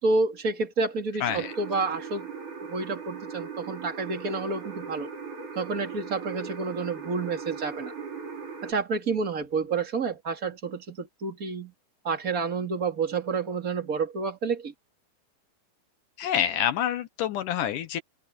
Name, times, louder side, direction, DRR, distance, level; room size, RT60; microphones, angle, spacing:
voice 1, 0.0-2.3 2.7-5.1 5.5-7.9 8.6-11.7 12.0-14.7, right 4 dB, 25° right, 2.7 m, -29 dB
voice 2, 1.2-1.5 16.2-18.0, left 10 dB, 70° left, 2.2 m, -27 dB
sound 1, 1.3-8.7, right 5 dB, 55° right, 5.6 m, -39 dB
open air
omnidirectional pair, 4.3 m